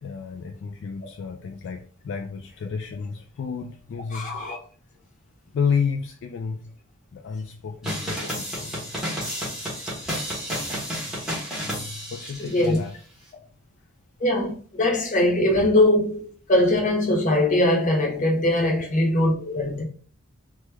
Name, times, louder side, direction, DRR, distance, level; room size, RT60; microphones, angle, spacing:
voice 1, 0.0-4.4 5.5-6.7 7.1-8.9 9.2-9.3 11.7-12.9, left 6 dB, 55° left, 0.3 m, -31 dB
voice 2, 4.1-4.6 12.4-12.8 14.2-19.8, left 1 dB, 35° left, 0.8 m, -21 dB
sound 1, 7.8-12.8, equal, 5° right, 1.1 m, -31 dB
3.0 x 2.3 x 3.3 m
head